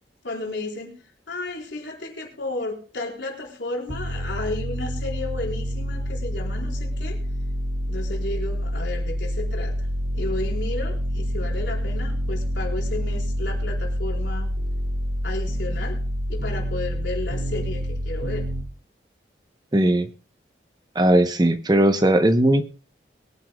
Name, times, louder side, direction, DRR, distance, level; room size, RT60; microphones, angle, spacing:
voice 1, 0.2-1.0 1.3-7.2 7.9-9.9 10.1-14.5 15.2-16.0 16.3-18.5, left 2 dB, 85° left, -1 dB, 4.0 m, -33 dB
sound 1, 3.9-18.6, equal, 85° right, 2.6 m, -27 dB
voice 2, 19.7-20.1 21.0-22.6, right 1 dB, 20° right, 9 dB, 0.8 m, -18 dB
22.5 x 9.9 x 2.3 m, 0.37 s
head